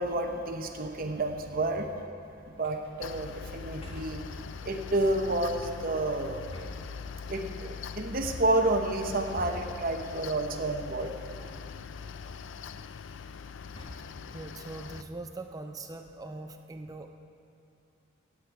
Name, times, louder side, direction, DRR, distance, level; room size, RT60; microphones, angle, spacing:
voice 1, 0.0-1.9 2.6-4.2 4.6-6.5 7.2-11.1, right 2 dB, 50° right, 4 dB, 0.9 m, -30 dB
sound 1, 2.6-2.9 3.8-4.3 5.5-6.0 6.5-7.4 8.2-8.7 9.4-10.0 11.4-12.0 12.3-12.7 13.7-14.3 14.9-15.4, left 2 dB, 30° left, 1.3 m, -46 dB
Mechanical fan, 3.0-15.0, left 6 dB, 70° left, 0.4 m, -42 dB
voice 2, 14.3-17.1, right 2 dB, 20° right, 5 dB, 0.4 m, -42 dB
17.0 x 8.6 x 4.8 m, 2.5 s
head